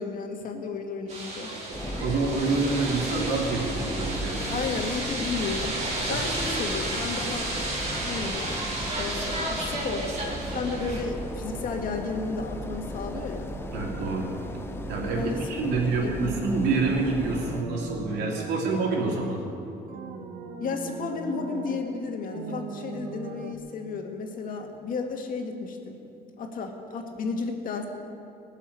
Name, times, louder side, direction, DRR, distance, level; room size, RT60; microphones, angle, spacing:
voice 1, 0.0-1.5 4.5-5.8 6.1-7.5 7.9-8.6 9.0-10.1 10.5-13.5 15.1-16.2 20.6-26.0 26.4-27.9, left 4 dB, 55° left, 3 dB, 2.0 m, -33 dB
sound 1, 1.1-11.0, right 2 dB, 45° right, 3.9 m, -32 dB
sound 2, 1.7-17.6, equal, 15° left, 1.0 m, -36 dB
voice 2, 2.0-4.6 6.1-6.2 13.7-14.3 14.9-19.4, right 3 dB, 80° right, -1 dB, 3.2 m, -27 dB
sound 3, 17.3-18.5 19.9-21.9 22.3-23.5, right 4 dB, 65° right, 1.6 m, -39 dB
18.5 x 7.3 x 9.8 m, 2.7 s
cardioid pair, 110°, 17 cm